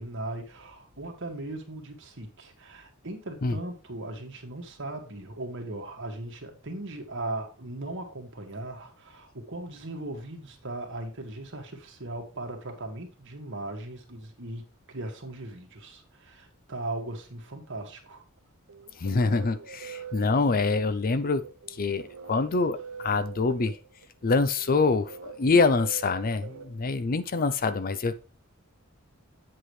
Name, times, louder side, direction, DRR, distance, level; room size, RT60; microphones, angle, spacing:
voice 1, 0.0-18.2, right 2 dB, 60° right, 1.9 m, -38 dB
sound 1, 18.7-27.4, right 7 dB, 85° right, 0.8 m, -44 dB
voice 2, 19.0-23.8 24.2-28.1, left 4 dB, 40° left, 0.5 m, -25 dB
8.2 x 7.5 x 3.2 m
head